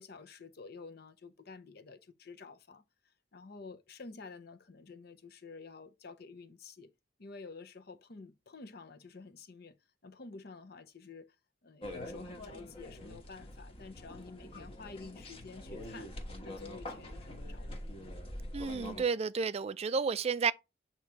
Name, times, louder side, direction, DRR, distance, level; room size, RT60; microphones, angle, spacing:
voice 1, 0.0-2.8 3.3-6.9 7.2-9.8 10.0-11.3 11.6-16.1 16.4-17.8, left 4 dB, 60° left, 0.7 m, -50 dB
sound 1, 11.8-19.0, left 1 dB, 30° left, 1.1 m, -44 dB
voice 2, 18.5-20.5, right 5 dB, 35° right, 0.3 m, -31 dB
8.0 x 3.0 x 4.6 m
head